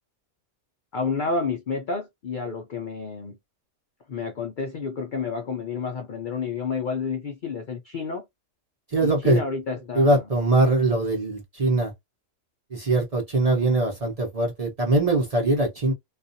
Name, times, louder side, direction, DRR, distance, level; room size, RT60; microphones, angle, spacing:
voice 1, 0.9-3.4 4.1-8.3 9.0-10.2, left 5 dB, 65° left, 0.5 m, -30 dB
voice 2, 8.9-9.4 9.9-11.9 12.7-15.9, right 2 dB, 35° right, 0.7 m, -22 dB
2.4 x 2.3 x 2.6 m
omnidirectional pair, 1.5 m